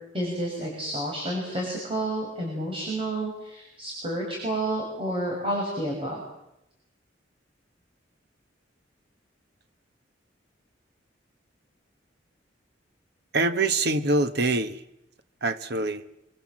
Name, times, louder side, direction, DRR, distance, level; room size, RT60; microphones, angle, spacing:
voice 1, 0.1-6.2, right 1 dB, 30° right, -1 dB, 6.1 m, -30 dB
voice 2, 13.3-14.8 15.4-16.0, right 2 dB, 60° right, 11 dB, 1.2 m, -24 dB
25.5 x 23.5 x 7.5 m, 0.85 s
head